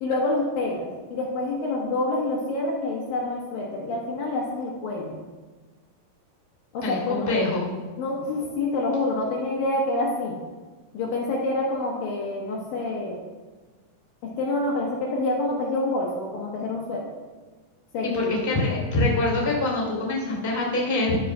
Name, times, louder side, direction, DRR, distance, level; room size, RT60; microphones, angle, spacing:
voice 1, 0.0-5.2 6.7-7.4 8.0-10.4 10.9-13.2 14.2-17.2 17.9-18.3, left 2 dB, 70° left, -2 dB, 2.7 m, -27 dB
voice 2, 6.8-7.6 18.3-21.2, left 2 dB, 5° left, -3 dB, 2.3 m, -24 dB
12.0 x 4.9 x 5.9 m, 1.3 s
omnidirectional pair, 4.6 m